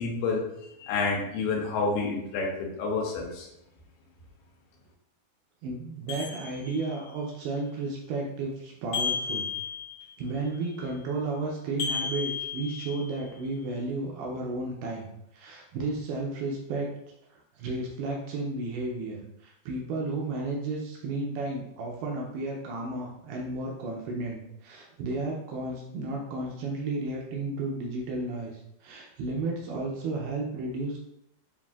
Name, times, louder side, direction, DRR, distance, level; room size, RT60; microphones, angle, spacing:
voice 1, 0.0-3.5, left 4 dB, 85° left, -1 dB, 2.7 m, -29 dB
voice 2, 5.6-9.5 10.2-16.9 17.3-31.0, right 2 dB, 80° right, -1 dB, 2.5 m, -33 dB
sound 1, 6.1-7.1 8.9-10.2 11.8-13.3, left 6 dB, 60° left, 1.8 m, -33 dB
7.3 x 2.5 x 2.3 m, 0.80 s
omnidirectional pair, 4.5 m